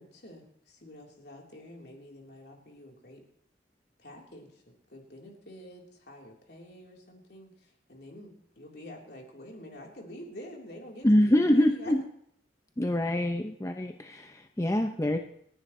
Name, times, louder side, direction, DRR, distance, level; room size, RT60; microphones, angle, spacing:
voice 1, 0.0-3.2 4.0-4.6 4.9-11.9, left 1 dB, 60° left, -1 dB, 3.5 m, -47 dB
voice 2, 11.0-12.0 12.8-15.2, left 1 dB, 15° left, 5 dB, 0.6 m, -25 dB
28.5 x 10.5 x 3.1 m, 0.66 s
head